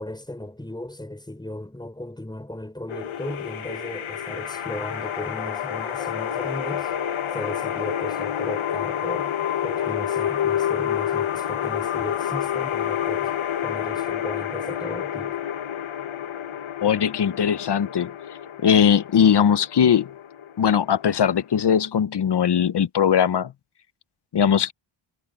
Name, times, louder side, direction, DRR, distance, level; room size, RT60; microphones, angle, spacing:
voice 1, 0.0-6.9 7.3-9.3 9.6-15.4, left 1 dB, 10° left, 5.3 m, -36 dB
sound 1, 2.9-21.9, left 10 dB, 70° left, 1.3 m, -29 dB
voice 2, 16.8-18.1 18.6-20.1 20.6-23.5 24.3-24.7, left 8 dB, 55° left, 0.8 m, -20 dB
wide cardioid pair, 165°, 50 cm